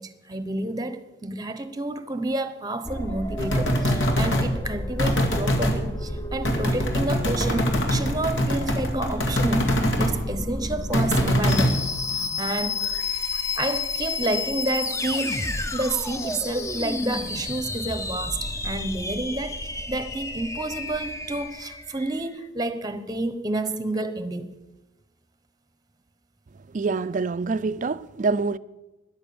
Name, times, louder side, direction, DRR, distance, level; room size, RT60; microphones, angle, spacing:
voice 1, 0.0-9.7 10.0-19.6 19.9-24.5, right 2 dB, 20° right, 0.9 m, -30 dB
sound 1, 2.9-22.2, left 2 dB, 15° left, 0.7 m, -31 dB
sound 2, 3.4-4.5 5.0-5.8 6.4-10.1 10.9-11.8, equal, 70° left, 2.1 m, -23 dB
voice 2, 26.7-28.6, right 4 dB, 40° right, 0.4 m, -25 dB
13.5 x 10.5 x 7.1 m
head